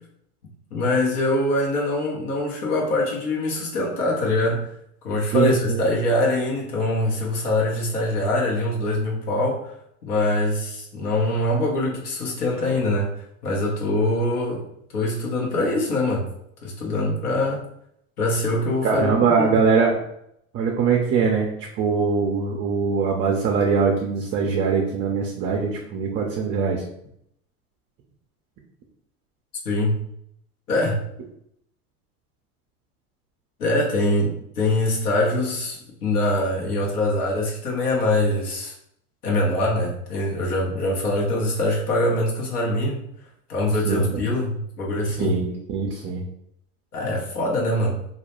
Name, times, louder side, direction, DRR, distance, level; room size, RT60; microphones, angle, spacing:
voice 1, 0.7-4.7 5.0-9.7 10.0-13.1 13.4-14.7 14.9-16.3 16.6-17.6 18.2-19.6 29.6-30.0 30.7-31.0 33.6-38.7 39.2-43.0 43.5-45.3 46.9-48.0, left 1 dB, 80° left, -2 dB, 0.9 m, -23 dB
voice 2, 5.3-5.8 18.8-20.1 20.5-26.8 43.8-44.2 45.2-46.2, right 5 dB, 30° right, 0 dB, 0.4 m, -22 dB
2.4 x 2.1 x 2.9 m, 0.73 s
hypercardioid pair, 90°, 45 cm